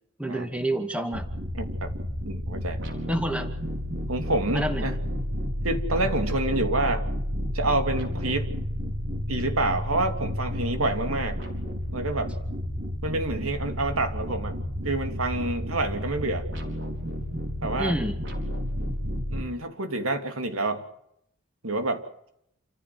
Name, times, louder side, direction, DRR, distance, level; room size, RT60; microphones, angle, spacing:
voice 1, 0.2-1.2 3.1-3.5 4.5-4.8 13.4-13.5 17.8-18.2, right 1 dB, 5° right, 6 dB, 2.2 m, -28 dB
sound 1, 1.1-19.4, equal, 60° right, 4.5 m, -31 dB
voice 2, 1.5-1.9 2.3-2.8 4.1-5.0 5.6-7.1 7.5-8.5 9.3-11.4 11.9-12.4 13.0-14.6 14.8-16.5 17.6-18.0 19.3-20.8 21.6-22.0, right 2 dB, 85° right, 6 dB, 3.0 m, -28 dB
28.5 x 15.0 x 7.9 m, 0.74 s
head